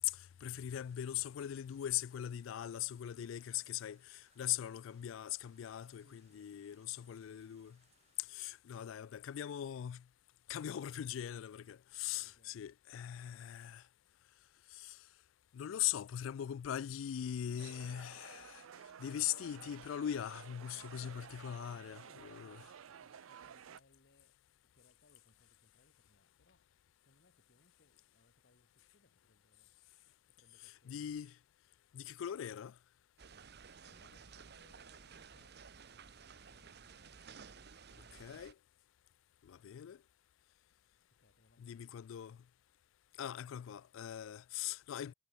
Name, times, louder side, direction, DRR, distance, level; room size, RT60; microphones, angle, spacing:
voice 1, 0.0-7.8 8.3-10.0 10.5-13.8 14.7-15.0 15.5-18.6 19.0-22.6 30.6-31.4 31.9-32.7 38.2-38.5 39.4-40.0 41.6-42.4 43.2-45.1, left 11 dB, 70° left, 0.3 m, -41 dB
sound 1, 0.7-8.3, right 6 dB, 35° right, 4.4 m, -76 dB
voice 2, 3.3-3.9 6.0-7.6 10.5-11.4 11.8-12.7 21.4-24.4 24.7-29.7 30.3-31.2 33.8-35.8 36.4-37.2 37.5-38.5 41.1-42.0, left 2 dB, 55° left, 1.6 m, -71 dB
sound 2, 17.6-23.8, right 8 dB, 85° right, 0.5 m, -54 dB
sound 3, 33.2-38.5, right 6 dB, 55° right, 0.9 m, -55 dB
head